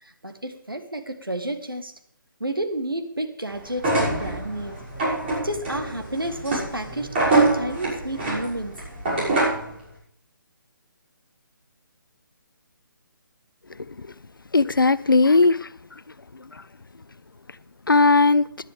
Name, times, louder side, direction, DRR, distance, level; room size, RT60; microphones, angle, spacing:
voice 1, 0.0-1.9 2.4-4.8 5.3-8.8, right 1 dB, 85° right, 6 dB, 1.5 m, -31 dB
sound 1, 3.7-9.7, right 2 dB, 35° right, 6.4 m, -25 dB
voice 2, 14.5-15.7 16.3-16.6 17.9-18.5, left 3 dB, 75° left, 18 dB, 0.5 m, -18 dB
17.5 x 11.0 x 3.6 m, 0.63 s
figure-of-eight pair, 140°, 11 cm